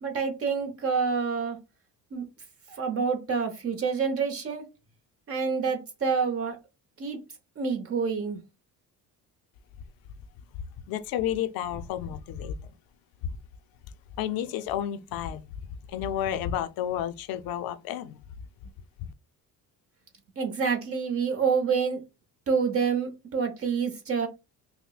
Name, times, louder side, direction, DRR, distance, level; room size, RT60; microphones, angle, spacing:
voice 1, 0.0-1.6 2.1-2.2 2.7-4.6 5.3-6.6 7.0-7.2 7.6-8.4 20.4-22.0 22.5-24.3, right 5 dB, 40° right, 0.9 m, -27 dB
voice 2, 10.9-12.8 13.2-13.4 14.2-18.2, left 10 dB, 80° left, 0.5 m, -31 dB
5.6 x 2.1 x 2.3 m
cardioid pair, 130°, 35 cm